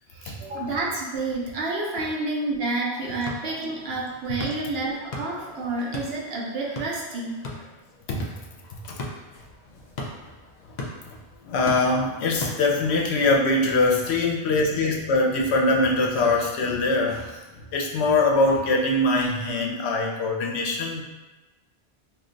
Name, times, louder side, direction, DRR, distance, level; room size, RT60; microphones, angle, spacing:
voice 1, 0.1-7.4, right 2 dB, 70° right, -3 dB, 0.9 m, -29 dB
sound 1, 3.0-13.1, left 2 dB, 55° left, 0.5 m, -39 dB
voice 2, 11.4-17.4 17.7-21.1, left 2 dB, 75° left, 0 dB, 0.8 m, -23 dB
2.7 x 2.1 x 3.7 m, 1.1 s
omnidirectional pair, 1.1 m